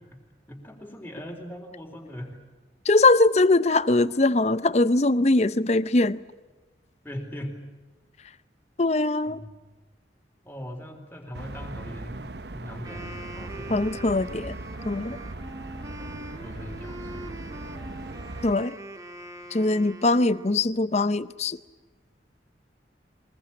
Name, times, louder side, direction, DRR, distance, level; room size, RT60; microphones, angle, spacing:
voice 1, 0.5-2.4 7.0-7.6 9.3-9.6 10.4-14.1 16.0-16.1 16.4-17.3, equal, 10° left, 3.9 m, -40 dB
voice 2, 2.8-6.2 8.8-9.4 13.7-14.6 14.8-15.2 18.4-18.7 19.5-21.6, left 2 dB, 35° left, 0.7 m, -21 dB
sound 1, 11.3-18.5, right 2 dB, 65° right, 0.9 m, -39 dB
Wind instrument woodwind instrument, 12.7-20.8, right 1 dB, 20° right, 1.8 m, -43 dB
23.5 x 21.0 x 8.9 m
head